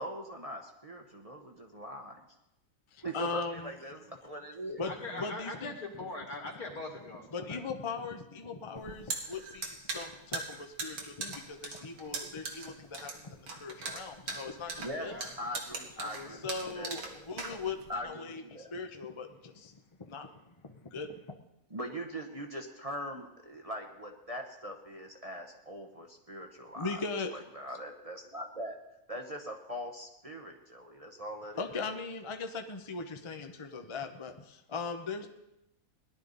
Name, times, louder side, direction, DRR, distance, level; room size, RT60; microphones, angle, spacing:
voice 1, 0.0-2.2 3.0-4.9 14.8-17.3 17.9-18.7 21.7-27.0 27.3-28.8 29.1-31.7, equal, 30° right, 2 dB, 1.0 m, -41 dB
voice 2, 2.9-3.7 4.8-5.7 7.3-15.2 16.3-21.4 26.7-27.4 31.6-35.3, left 4 dB, 25° left, 5 dB, 0.8 m, -39 dB
voice 3, 4.9-7.6 15.0-15.3 16.0-16.3, left 2 dB, 80° left, 0 dB, 2.8 m, -42 dB
sound 1, 8.8-18.0, right 3 dB, 90° right, 2.1 m, -39 dB
18.5 x 11.5 x 4.0 m, 0.90 s
omnidirectional pair, 1.5 m